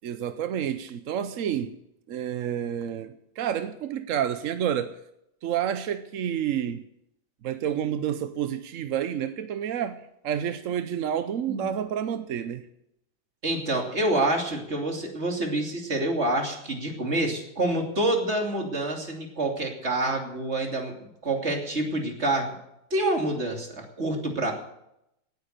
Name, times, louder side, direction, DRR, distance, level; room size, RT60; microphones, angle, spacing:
voice 1, 0.0-1.8 2.1-5.0 5.4-6.8 7.4-12.6, right 9 dB, 60° right, 0.8 m, -29 dB
voice 2, 13.4-22.5 22.9-24.5, right 1 dB, 35° right, 3.1 m, -27 dB
18.0 x 9.6 x 6.7 m
omnidirectional pair, 2.1 m